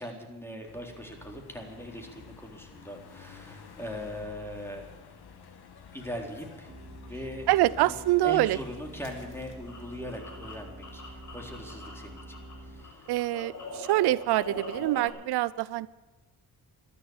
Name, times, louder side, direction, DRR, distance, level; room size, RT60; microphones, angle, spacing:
voice 1, 0.0-5.0 5.9-6.7 7.1-7.5 7.9-8.0 8.2-13.1, equal, 5° left, 2 dB, 4.0 m, -40 dB
sound 1, 0.6-14.9, left 7 dB, 75° left, 1.9 m, -52 dB
sound 2, 6.7-12.8, right 1 dB, 35° right, 3.6 m, -47 dB
voice 2, 7.5-8.6 13.1-15.9, right 16 dB, 85° right, 19 dB, 0.5 m, -25 dB
sound 3, 9.2-12.5 12.8-15.1, equal, 50° left, 5.5 m, -42 dB
13.0 x 11.5 x 9.6 m, 1.2 s
cardioid pair, 65°, 38 cm